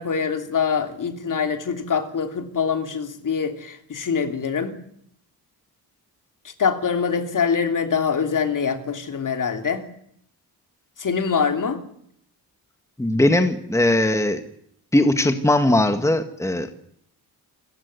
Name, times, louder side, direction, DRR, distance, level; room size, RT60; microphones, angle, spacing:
voice 1, 0.0-4.8 6.4-9.8 11.0-11.8, left 6 dB, 50° left, 3.1 m, -24 dB
voice 2, 13.0-14.4 14.9-16.7, left 1 dB, 5° left, 1.8 m, -19 dB
28.0 x 15.5 x 9.6 m
wide cardioid pair, 145°, 39 cm